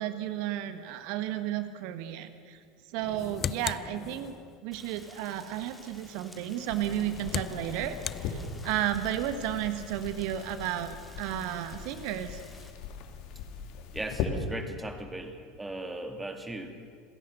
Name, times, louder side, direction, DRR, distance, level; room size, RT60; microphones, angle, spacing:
voice 1, 0.0-2.6 2.9-4.3 4.6-12.4, right 11 dB, 55° right, 10 dB, 1.4 m, -33 dB
sound 1, 3.0-4.6 6.6-8.9, left 8 dB, 35° left, 0.4 m, -38 dB
Rain, 4.7-12.7, left 1 dB, 5° left, 3.0 m, -53 dB
sound 2, 6.7-14.3, left 8 dB, 55° left, 2.2 m, -40 dB
voice 2, 13.9-16.7, right 2 dB, 10° right, 6 dB, 2.5 m, -38 dB
27.5 x 17.0 x 6.6 m, 2.1 s
figure-of-eight pair, 75°, 0 cm